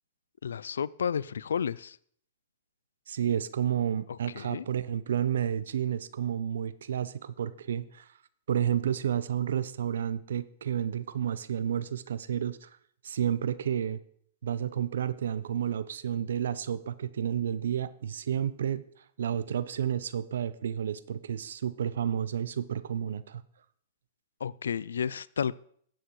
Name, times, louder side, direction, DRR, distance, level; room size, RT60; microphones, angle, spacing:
voice 1, 0.4-2.0 4.1-4.6 24.4-25.6, left 7 dB, 85° left, 22 dB, 0.4 m, -32 dB
voice 2, 3.1-8.1 8.5-12.7 13.0-14.0 14.4-18.8 19.2-23.4, right 9 dB, 80° right, 16 dB, 0.7 m, -31 dB
13.0 x 8.1 x 4.8 m, 0.62 s
hypercardioid pair, 120°, 0 cm